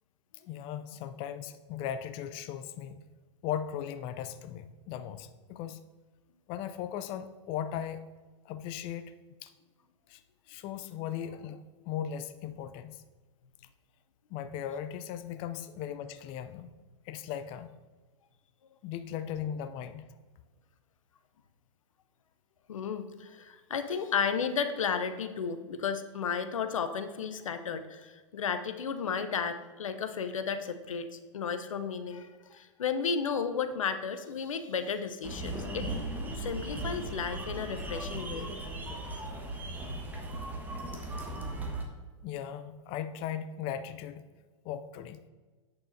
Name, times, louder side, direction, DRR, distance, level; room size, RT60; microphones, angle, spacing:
voice 1, 0.5-3.0 3.4-5.8 6.5-8.0 8.4-9.1 9.4-9.5 10.1-10.2 10.5-13.0 14.3-16.7 17.0-17.7 18.8-20.0 42.2-44.2 44.6-45.3, left 9 dB, 35° left, 11 dB, 0.4 m, -38 dB
voice 2, 22.7-35.9 36.4-38.5, left 6 dB, 85° left, 10 dB, 0.7 m, -33 dB
sound 1, 35.2-41.8, right 1 dB, 10° right, 1.2 m, -37 dB
8.3 x 6.8 x 2.6 m, 1.4 s
hypercardioid pair, 115°, 17 cm